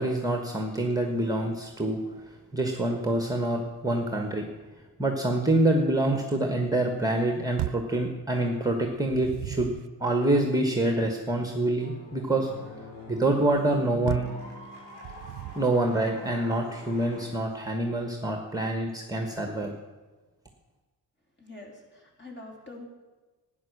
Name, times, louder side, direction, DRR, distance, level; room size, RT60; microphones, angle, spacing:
voice 1, 0.0-2.0 2.5-4.5 5.0-12.5 13.1-14.3 15.5-19.7, right 1 dB, 10° right, 4 dB, 1.4 m, -26 dB
sound 1, 7.6-8.0 8.9-9.9 14.1-14.4 15.0-15.8, right 16 dB, 70° right, 0.5 m, -35 dB
sound 2, 11.8-17.3, left 1 dB, 70° left, 5.5 m, -45 dB
voice 2, 21.4-22.9, left 2 dB, 25° left, 0 dB, 3.5 m, -45 dB
12.5 x 9.7 x 6.6 m, 1.2 s
cardioid pair, 100°, 40 cm